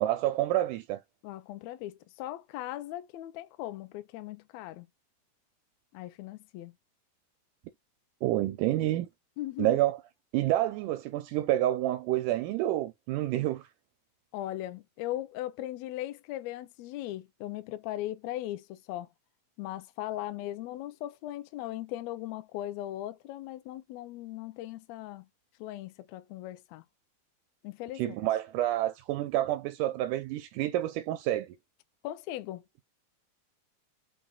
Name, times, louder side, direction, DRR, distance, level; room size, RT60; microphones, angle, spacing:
voice 1, 0.0-1.0 8.2-9.1 9.6-10.0 10.3-13.7 28.0-31.6, right 14 dB, 85° right, 2.1 m, -28 dB
voice 2, 1.2-4.9 5.9-6.7 9.4-9.8 14.3-19.1 19.6-25.3 25.6-26.8 27.6-28.0 32.0-32.6, left 14 dB, 80° left, 1.6 m, -38 dB
5.2 x 2.3 x 3.6 m
omnidirectional pair, 3.6 m